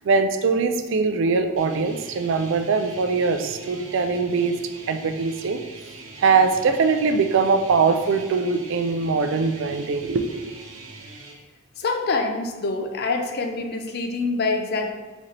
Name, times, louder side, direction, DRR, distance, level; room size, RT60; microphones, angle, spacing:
voice 1, 0.0-4.6 4.9-5.6 6.2-10.6, right 4 dB, 65° right, 7 dB, 0.4 m, -22 dB
sound 1, 1.6-11.3, right 3 dB, 90° right, 0.8 m, -42 dB
voice 2, 11.8-14.9, left 3 dB, 55° left, 5 dB, 0.5 m, -25 dB
4.1 x 3.3 x 3.8 m, 1.2 s
head